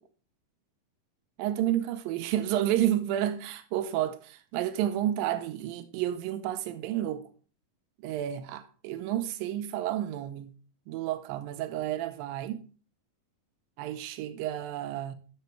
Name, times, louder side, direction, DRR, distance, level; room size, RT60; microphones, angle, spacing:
voice 1, 1.4-7.3 8.0-10.5 10.9-12.6 13.8-15.2, right 12 dB, 90° right, 2.4 m, -30 dB
11.0 x 6.9 x 3.1 m
omnidirectional pair, 4.1 m